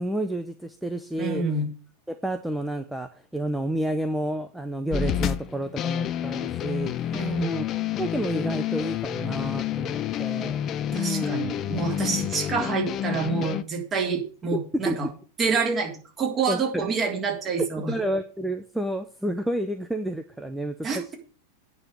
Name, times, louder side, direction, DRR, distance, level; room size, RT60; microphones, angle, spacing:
voice 1, 0.0-1.4 2.1-7.6 8.0-10.6 10.9-11.4 12.0-12.2 14.7-15.0 16.5-16.9 17.8-21.1, right 1 dB, 5° right, 7 dB, 0.8 m, -30 dB
voice 2, 1.2-1.7 7.1-7.5 10.9-15.1 15.4-17.9 20.8-21.1, right 5 dB, 25° right, 1 dB, 3.5 m, -27 dB
sound 1, 4.9-13.6, left 10 dB, 30° left, 0.6 m, -29 dB
9.3 x 5.8 x 8.2 m, 0.39 s
figure-of-eight pair, 90°, 0 cm